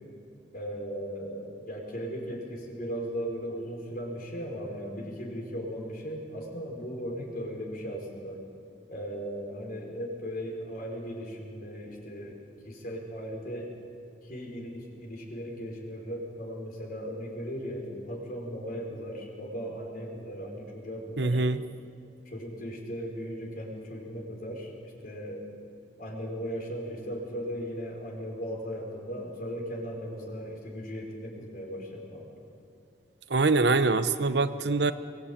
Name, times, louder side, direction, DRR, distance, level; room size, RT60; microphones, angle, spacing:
voice 1, 0.5-8.4 8.9-12.4 12.6-13.7 14.2-21.4 22.2-25.4 26.0-32.3, equal, 55° left, 0 dB, 5.0 m, -37 dB
voice 2, 21.2-21.6 33.3-34.9, right 3 dB, 70° right, 12 dB, 0.9 m, -24 dB
23.5 x 19.0 x 8.7 m, 2.4 s
head